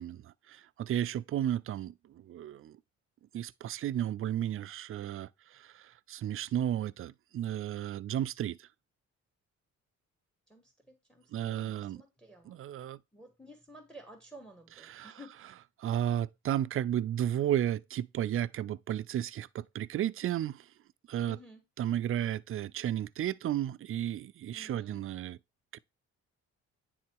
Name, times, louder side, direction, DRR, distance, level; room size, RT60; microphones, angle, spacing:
voice 1, 0.0-2.8 3.3-8.7 11.3-12.0 12.5-13.0 14.9-15.1 15.8-20.7 21.1-21.4 21.8-25.4 25.7-25.8, right 11 dB, 45° right, 0.4 m, -33 dB
voice 2, 10.5-12.6 13.1-15.6 21.2-21.6 24.5-25.0, equal, 5° left, 1.6 m, -53 dB
9.5 x 3.8 x 4.6 m
cardioid pair, 90°, 30 cm